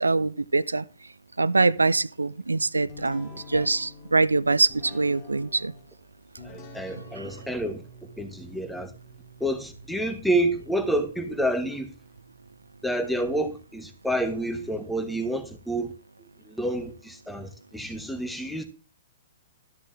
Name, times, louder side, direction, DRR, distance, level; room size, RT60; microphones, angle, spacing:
voice 1, 0.0-0.8 1.4-5.7 7.2-7.3, right 3 dB, 80° right, 0.4 m, -24 dB
sound 1, 2.9-14.3, left 1 dB, 35° left, 2.6 m, -48 dB
voice 2, 6.4-7.8 8.2-8.9 9.4-11.9 12.8-15.9 16.2-18.6, right 1 dB, ahead, 1.4 m, -29 dB
12.5 x 7.0 x 3.3 m
figure-of-eight pair, 115°, 0 cm